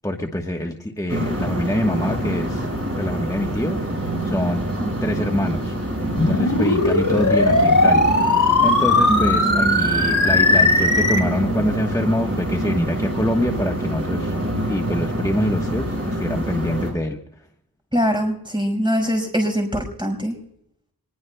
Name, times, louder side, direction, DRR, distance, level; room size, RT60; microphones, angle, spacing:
voice 1, 0.0-2.7 3.0-4.6 5.0-5.8 6.3-8.1 8.6-14.3 14.7-17.2, left 1 dB, 10° left, 2 dB, 1.2 m, -25 dB
sound 1, 1.1-16.9, right 1 dB, 40° right, 5.9 m, -26 dB
sound 2, 6.2-11.2, left 2 dB, 55° left, 2.9 m, -18 dB
voice 2, 9.1-9.8 17.9-20.3, equal, 15° right, 2 dB, 5.1 m, -23 dB
25.5 x 21.0 x 2.3 m, 0.74 s
wide cardioid pair, 45°, 36 cm